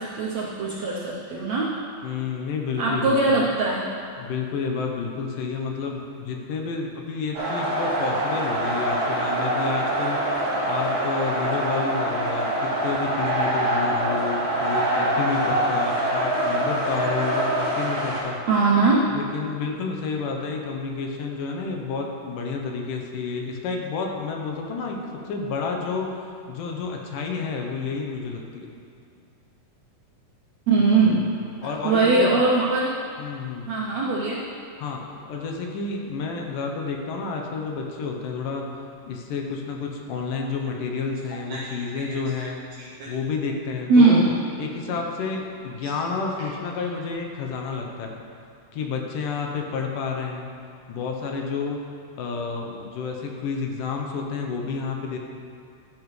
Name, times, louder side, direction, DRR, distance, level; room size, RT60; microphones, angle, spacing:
voice 1, 0.0-1.7 2.8-3.9 18.5-19.0 30.7-31.2 31.8-33.0 33.7-34.4 41.5-41.6 41.9-42.5 42.8-43.1 43.9-44.4, right 3 dB, 75° right, -4 dB, 1.6 m, -21 dB
voice 2, 2.0-3.4 4.2-18.4 19.1-25.0 25.2-28.7 30.8-32.4 33.2-33.8 34.8-42.6 43.1-44.2 44.6-48.2 48.7-50.5 50.9-51.8 52.2-55.2, left 4 dB, 75° left, 1 dB, 2.4 m, -30 dB
sound 1, 7.3-18.2, right 1 dB, 20° right, 2.4 m, -25 dB
12.5 x 10.0 x 3.2 m, 2.4 s
omnidirectional pair, 4.1 m